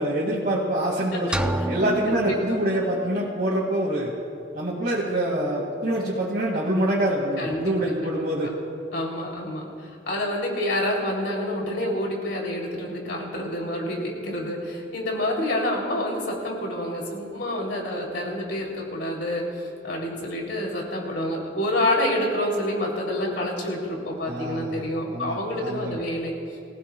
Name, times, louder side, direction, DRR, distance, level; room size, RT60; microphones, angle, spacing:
voice 1, 0.0-4.1 4.5-8.5 24.2-24.8 25.1-26.0, right 1 dB, 50° right, -6 dB, 2.2 m, -25 dB
sound 1, 1.3-3.3, right 1 dB, 5° right, 0.3 m, -30 dB
voice 2, 2.1-2.6 7.4-7.7 8.0-8.1 8.4-8.5 8.9-19.5 19.8-26.3, left 1 dB, 70° left, -1 dB, 3.3 m, -28 dB
23.5 x 16.0 x 2.3 m, 2.6 s
head